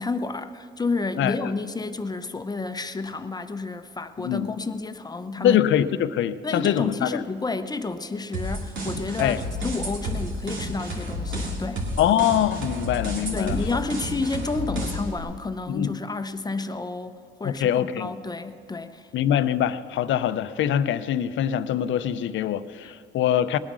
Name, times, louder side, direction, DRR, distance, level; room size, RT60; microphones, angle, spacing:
voice 1, 0.0-5.6 6.4-11.9 13.3-19.1, left 3 dB, 20° left, 10 dB, 0.7 m, -30 dB
voice 2, 5.4-7.2 9.2-9.4 12.0-13.6 15.7-15.9 17.4-18.1 19.1-23.6, left 10 dB, 75° left, 13 dB, 0.6 m, -23 dB
sound 1, 8.3-15.2, equal, 75° right, 2.8 m, -31 dB
19.5 x 9.0 x 6.2 m, 2.3 s
cardioid pair, 90°, 20 cm